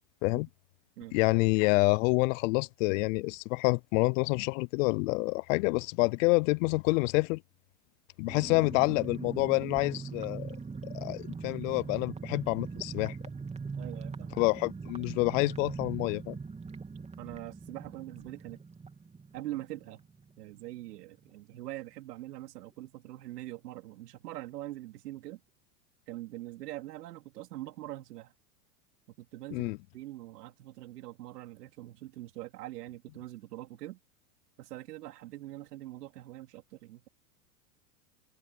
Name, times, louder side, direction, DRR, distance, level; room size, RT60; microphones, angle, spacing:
voice 1, 1.1-7.4 8.2-10.6 10.9-13.2 14.4-16.4 29.5-29.8, left 26 dB, 55° left, 0.5 m, -27 dB
sound 1, 8.3-20.6 20.9-21.0 21.3-21.6, right 4 dB, 15° right, 3.2 m, -41 dB
voice 2, 13.8-14.4 17.2-18.6 19.3-20.0 20.4-25.4 26.1-28.3 29.1-34.0 34.6-37.1, right 15 dB, 75° right, 3.7 m, -43 dB
hypercardioid pair, 115°, 47 cm